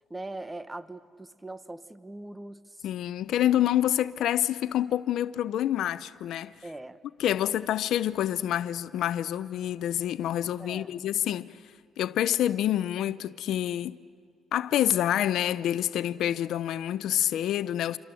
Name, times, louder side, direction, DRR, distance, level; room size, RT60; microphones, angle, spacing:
voice 1, 0.0-2.9 6.6-7.3 10.6-10.9, right 2 dB, 15° right, 1.2 m, -41 dB
voice 2, 2.8-6.5 7.2-11.5 12.0-14.0 14.5-18.0, left 12 dB, 80° left, 0.6 m, -27 dB
27.5 x 25.0 x 7.7 m
cardioid pair, 90°, 0 cm